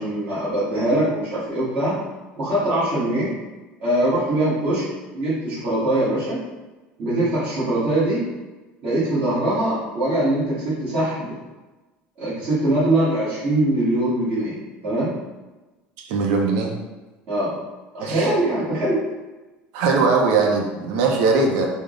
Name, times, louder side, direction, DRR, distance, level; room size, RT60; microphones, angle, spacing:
voice 1, 0.0-2.0 2.4-3.3 3.8-4.8 5.1-6.4 7.0-8.2 8.8-11.3 12.2-14.6 14.8-15.1 17.3-17.5 17.9-19.0, right 1 dB, 35° right, -12 dB, 1.2 m, -22 dB
voice 2, 16.0-16.7 18.0-18.3 19.7-21.7, right 4 dB, 65° right, 1 dB, 0.5 m, -20 dB
3.4 x 2.0 x 3.6 m, 1.1 s
cardioid pair, 180°, 4 cm